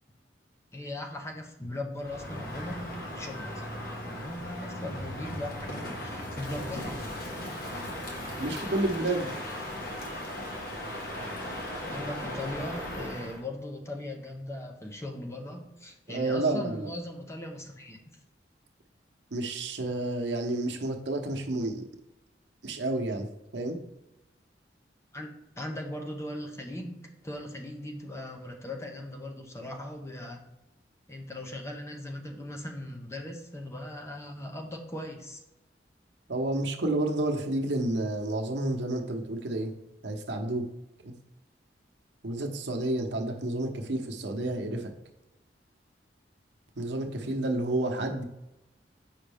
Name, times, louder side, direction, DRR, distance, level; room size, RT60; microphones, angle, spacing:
voice 1, 0.7-3.7 4.1-7.3 11.8-18.0 25.1-30.4 31.1-35.4, left 1 dB, 15° left, 2 dB, 0.9 m, -39 dB
Crow, 2.0-13.4, left 1 dB, 55° left, 1.5 m, -37 dB
voice 2, 8.4-9.3 16.1-16.9 19.3-21.8 22.6-23.3 23.5-23.8 36.3-39.7 40.0-40.7 41.0-41.2 42.2-44.9 46.8-48.2, right 2 dB, 80° right, 2 dB, 0.9 m, -30 dB
7.4 x 5.3 x 3.5 m, 0.95 s
head